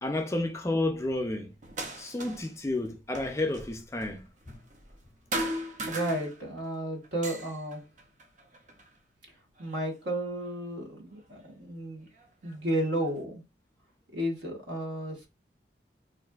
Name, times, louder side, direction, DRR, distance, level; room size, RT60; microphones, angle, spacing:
voice 1, 0.0-1.5 2.0-4.6, left 2 dB, 15° left, 0.4 m, -31 dB
sound 1, 1.6-2.6 2.8-5.0 5.3-6.7 7.0-8.9 9.6-10.5 11.4-11.5 12.1-13.2, right 1 dB, 45° right, 0.5 m, -38 dB
voice 2, 5.9-7.8 9.6-12.1 12.4-13.4 14.1-15.3, right 1 dB, 85° right, 1.2 m, -33 dB
4.0 x 2.5 x 2.3 m
head